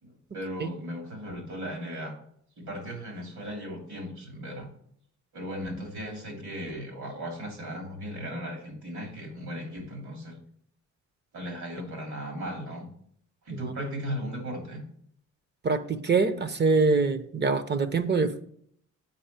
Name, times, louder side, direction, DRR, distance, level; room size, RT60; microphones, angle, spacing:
voice 1, 0.0-2.2 2.6-4.7 5.3-10.4 11.3-12.9 13.4-14.8, equal, 75° right, 2 dB, 2.9 m, -37 dB
voice 2, 15.6-18.4, right 4 dB, 35° right, 11 dB, 0.7 m, -24 dB
7.9 x 5.1 x 5.6 m, 0.65 s
cardioid pair, 115°, 29 cm